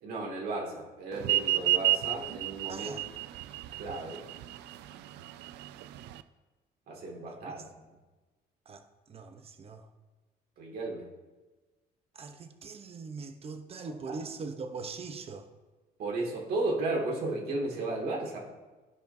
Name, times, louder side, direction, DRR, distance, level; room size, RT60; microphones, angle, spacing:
voice 1, 0.0-2.9 3.8-4.2 6.9-7.6 10.6-11.1 16.0-18.4, right 2 dB, 65° right, -1 dB, 2.2 m, -34 dB
sound 1, 1.2-6.2, right 16 dB, 85° right, 0.4 m, -30 dB
voice 2, 2.7-3.1 7.4-7.6 8.7-9.9 12.1-15.5, right 4 dB, 35° right, 7 dB, 0.8 m, -42 dB
14.0 x 5.1 x 2.7 m, 1.2 s
cardioid pair, 110°, 17 cm